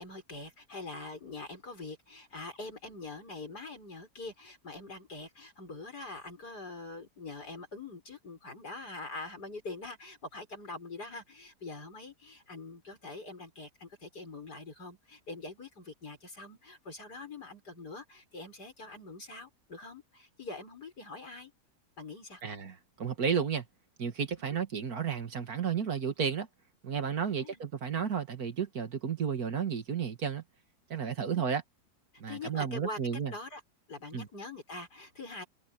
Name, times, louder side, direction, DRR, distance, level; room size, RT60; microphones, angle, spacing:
voice 1, 0.0-21.5 22.0-22.4 24.5-24.6 27.2-27.6 31.2-31.5 32.3-33.0 33.3-33.6 33.9-35.4, left 3 dB, 80° left, 7.3 m, -44 dB
voice 2, 22.4-23.7 24.0-26.5 26.8-30.4 30.9-31.6 32.2-33.3 34.1-34.3, right 7 dB, 65° right, 2.3 m, -32 dB
omnidirectional pair, 1.7 m